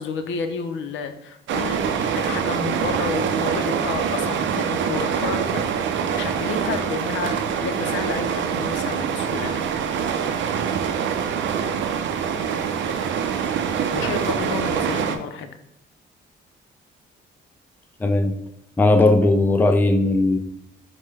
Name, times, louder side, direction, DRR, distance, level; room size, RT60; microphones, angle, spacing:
voice 1, 0.0-7.3 7.6-9.6 13.9-15.5, left 5 dB, 75° left, 7 dB, 0.6 m, -31 dB
sound 1, 1.5-15.2, right 7 dB, 70° right, 0.5 m, -24 dB
voice 2, 18.0-18.3 18.8-20.4, left 2 dB, 10° left, 6 dB, 0.4 m, -17 dB
5.1 x 2.2 x 3.3 m, 0.82 s
cardioid pair, 90°, 20 cm